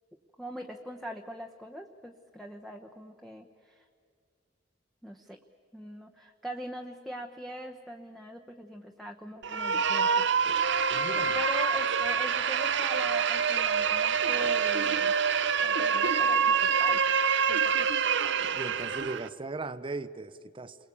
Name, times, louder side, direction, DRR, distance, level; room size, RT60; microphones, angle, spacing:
voice 1, 0.4-3.8 5.0-5.4 5.7-10.6 11.3-15.2 15.6-17.2 17.5-17.9, equal, ahead, 1.0 m, -42 dB
sound 1, 9.4-19.3, right 6 dB, 70° right, 0.7 m, -26 dB
voice 2, 10.9-11.4 18.5-20.8, right 3 dB, 30° right, 0.6 m, -38 dB
29.0 x 22.0 x 8.5 m
head